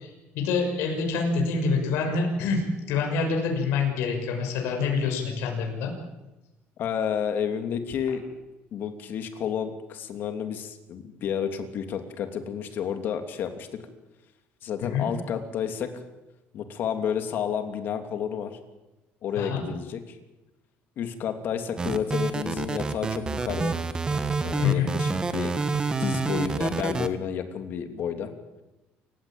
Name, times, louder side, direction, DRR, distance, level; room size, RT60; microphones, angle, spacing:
voice 1, 0.0-5.9 14.8-15.1 19.3-19.6 24.6-24.9, left 5 dB, 80° left, 2 dB, 6.4 m, -26 dB
voice 2, 6.8-8.2 8.7-13.7 14.6-15.9 16.5-18.6 19.2-20.2 21.0-23.7 24.4-25.6 26.0-28.3, left 8 dB, 50° left, 7 dB, 2.9 m, -31 dB
sound 1, 21.8-27.1, right 4 dB, 20° right, 1.5 m, -27 dB
28.5 x 16.5 x 8.9 m, 1.0 s
cardioid pair, 155°, 4 cm